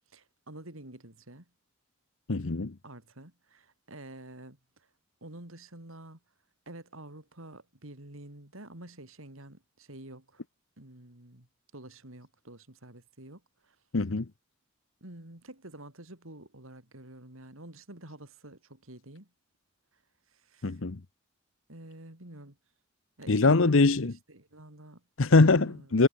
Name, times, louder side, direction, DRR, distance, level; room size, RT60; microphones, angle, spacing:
voice 1, 0.1-1.5 2.8-4.9 5.2-6.2 6.7-10.4 10.8-11.5 11.7-13.8 15.0-19.3 20.3-20.8 21.7-22.6 23.2-25.0 25.6-25.9, right 1 dB, 75° right, 4.1 m, -48 dB
voice 2, 2.3-2.7 13.9-14.2 20.6-21.0 23.3-24.2 25.2-26.1, left 3 dB, 65° left, 0.9 m, -22 dB
head